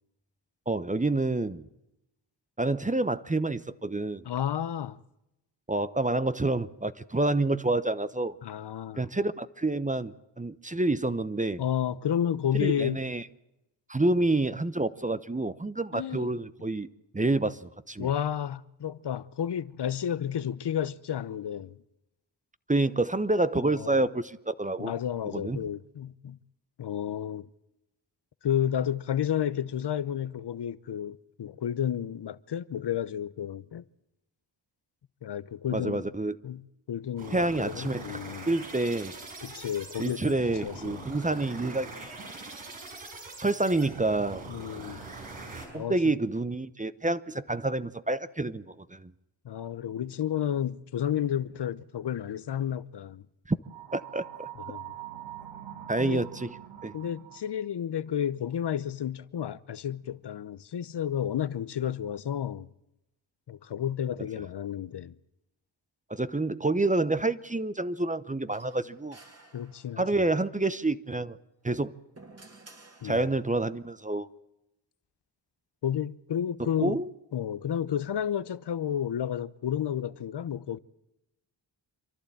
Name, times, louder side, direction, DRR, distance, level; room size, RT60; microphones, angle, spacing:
voice 1, 0.7-1.6 2.6-4.2 5.7-8.4 9.0-11.6 12.6-13.2 13.9-16.9 17.1-18.1 22.7-24.9 25.3-25.6 35.7-36.4 37.3-38.2 38.5-39.1 40.0-42.1 43.4-44.4 45.7-49.1 53.5-53.6 53.9-54.2 55.9-56.5 56.8-57.0 66.1-69.2 70.0-71.4 71.6-71.9 73.0-74.3 76.6-77.1, right 2 dB, 15° right, 0.8 m, -28 dB
voice 2, 4.2-5.0 8.4-9.0 11.6-13.0 15.9-16.3 18.0-21.8 23.6-24.1 24.8-26.4 26.8-27.5 28.4-33.8 35.2-36.0 36.4-36.6 36.9-38.5 39.4-40.3 40.6-41.0 44.5-45.0 45.7-46.0 49.4-53.2 54.7-54.9 56.0-56.3 56.9-62.7 63.5-65.2 69.5-70.3 73.0-73.3 75.8-77.0 77.3-80.8, left 9 dB, 60° left, 0.8 m, -31 dB
sound 1, 37.2-45.7, right 3 dB, 85° right, 5.4 m, -43 dB
sound 2, 53.6-57.6, right 11 dB, 65° right, 1.8 m, -43 dB
sound 3, 68.5-70.3 71.6-73.7, right 2 dB, 30° right, 2.7 m, -54 dB
27.5 x 12.0 x 8.7 m
cardioid pair, 55°, 47 cm